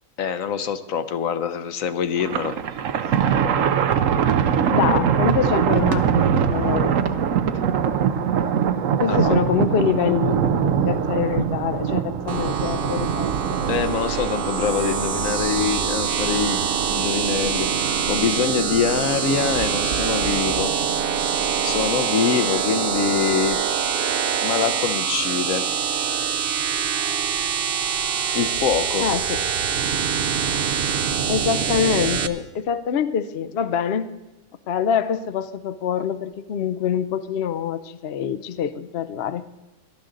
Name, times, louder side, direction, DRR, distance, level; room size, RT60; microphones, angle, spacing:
voice 1, 0.2-2.6 9.1-9.3 13.7-20.7 21.0-21.2 21.6-23.6 24.4-25.6 26.5-26.6 28.3-29.1, left 7 dB, 75° left, 10 dB, 1.2 m, -25 dB
Thunder, 2.2-13.9, right 8 dB, 70° right, 1.1 m, -22 dB
voice 2, 4.7-7.0 9.0-13.5 29.0-29.4 31.3-34.1 34.7-39.4, left 8 dB, 60° left, 12 dB, 0.8 m, -25 dB
sound 1, 12.3-32.3, right 7 dB, 55° right, 0.7 m, -24 dB
17.5 x 12.0 x 3.9 m, 1.0 s
omnidirectional pair, 1.4 m